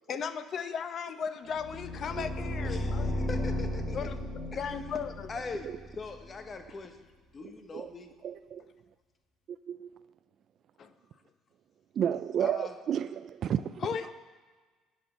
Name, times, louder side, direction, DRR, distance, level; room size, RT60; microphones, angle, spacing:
voice 1, 0.1-3.1 3.9-4.2 4.6-5.3 6.7-6.8 10.8-10.9 13.8-14.1, left 7 dB, 45° left, 11 dB, 0.7 m, -36 dB
sound 1, 1.5-6.5, left 1 dB, 65° left, 3.8 m, -35 dB
voice 2, 2.6-4.0 4.5-4.6 5.3-5.7 6.0-6.9 7.3-8.1 12.4-12.7, left 4 dB, 30° left, 6 dB, 1.1 m, -41 dB
voice 3, 8.2-8.6 9.7-9.9 12.0-13.6, right 9 dB, 50° right, 11 dB, 0.3 m, -31 dB
10.5 x 6.2 x 6.9 m, 1.4 s
cardioid pair, 115°, 0 cm